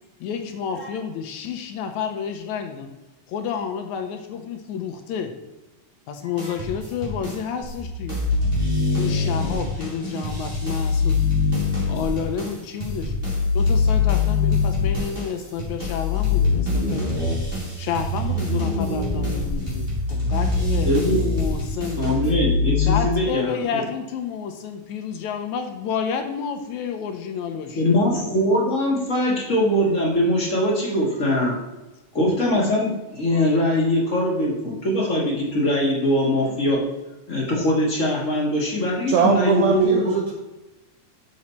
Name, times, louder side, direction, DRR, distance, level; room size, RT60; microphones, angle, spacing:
voice 1, 0.2-2.9 3.3-5.3 6.1-8.2 8.9-11.2 11.9-13.1 13.5-17.1 17.8-22.0 22.8-28.0, left 7 dB, 75° left, 5 dB, 2.0 m, -30 dB
sound 1, 6.4-7.8 8.1-22.3, right 1 dB, 20° right, 2.5 m, -33 dB
sound 2, 7.6-9.5 10.4-12.1 13.0-15.0 15.8-23.0, left 4 dB, 35° right, 2.5 m, -23 dB
voice 2, 20.8-21.2 22.0-23.6 27.7-31.6 32.1-36.8 37.3-40.1, left 1 dB, 35° left, -3 dB, 1.4 m, -22 dB
voice 3, 39.1-40.3, right 5 dB, 75° right, 1 dB, 1.4 m, -20 dB
7.0 x 6.3 x 4.3 m, 1.1 s
omnidirectional pair, 3.5 m